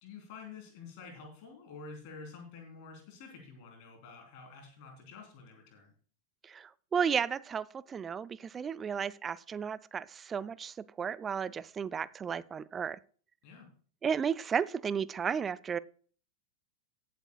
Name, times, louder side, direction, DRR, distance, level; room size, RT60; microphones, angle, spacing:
voice 1, 0.0-5.9 13.4-13.7, left 4 dB, 45° left, 3.4 m, -49 dB
voice 2, 6.4-13.0 14.0-15.8, right 7 dB, 20° right, 0.3 m, -33 dB
18.5 x 7.8 x 2.3 m
figure-of-eight pair, 90°, 0 cm